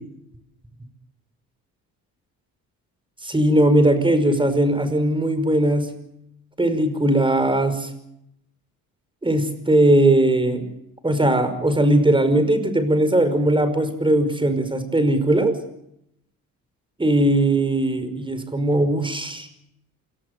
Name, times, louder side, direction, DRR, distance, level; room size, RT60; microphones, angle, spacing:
voice 1, 3.2-5.9 6.6-7.9 9.2-10.7 11.0-15.5 17.0-19.5, right 1 dB, 15° right, 10 dB, 5.3 m, -19 dB
28.0 x 18.5 x 6.7 m, 0.79 s
cardioid pair, 100°, 35 cm